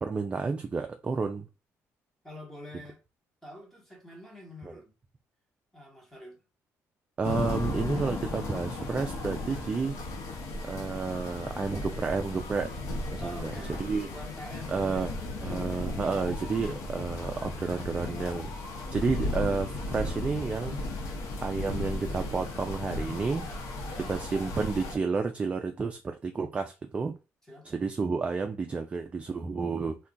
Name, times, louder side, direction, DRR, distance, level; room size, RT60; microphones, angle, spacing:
voice 1, 0.0-1.5 4.6-4.7 7.2-10.0 10.6-12.7 13.1-13.5 13.8-14.1 14.7-15.1 15.4-18.5 18.9-20.8 21.4-23.4 24.1-27.1 27.6-30.0, right 4 dB, 20° right, 0.3 m, -31 dB
voice 2, 2.2-3.0 3.4-5.0 5.7-6.4 13.2-15.2 23.9-24.1 27.5-27.7, left 1 dB, 5° left, 1.0 m, -46 dB
sound 1, 7.2-25.0, left 2 dB, 75° left, 0.7 m, -35 dB
2.3 x 2.2 x 3.8 m
cardioid pair, 145°, 5 cm